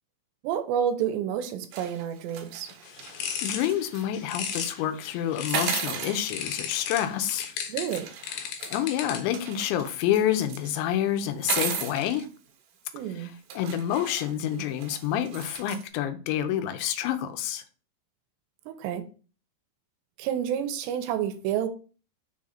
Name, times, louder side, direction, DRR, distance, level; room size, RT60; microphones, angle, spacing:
voice 1, 0.4-2.7 7.7-8.1 12.9-13.4 18.7-19.1 20.2-21.7, right 9 dB, 85° right, 2.8 m, -29 dB
sound 1, 1.7-4.0 4.4-4.7 5.5-7.2 7.9-10.7 11.3-12.2 13.0-13.1 13.5-15.8, right 7 dB, 70° right, 2.2 m, -36 dB
sound 2, 2.8-5.9 6.3-9.4, left 7 dB, 70° left, 2.3 m, -35 dB
voice 2, 3.2-7.5 8.3-12.3 13.2-17.6, left 10 dB, 90° left, 3.1 m, -28 dB
6.8 x 3.8 x 5.7 m
omnidirectional pair, 5.2 m